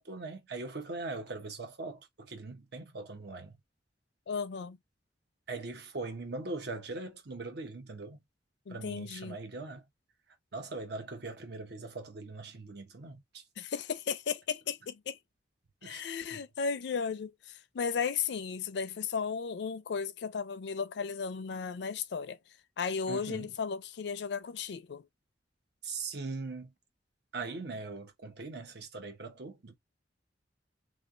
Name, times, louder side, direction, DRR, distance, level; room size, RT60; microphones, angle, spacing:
voice 1, 0.0-3.5 5.5-8.2 8.7-9.8 10.5-13.4 15.8-16.0 16.3-16.4 23.1-23.5 25.8-26.7 27.3-29.8, right 3 dB, 65° right, 0.9 m, -41 dB
voice 2, 4.3-4.8 8.7-9.4 13.6-15.2 15.8-22.4 22.8-25.1, left 6 dB, 65° left, 0.4 m, -35 dB
3.2 x 2.3 x 2.4 m
head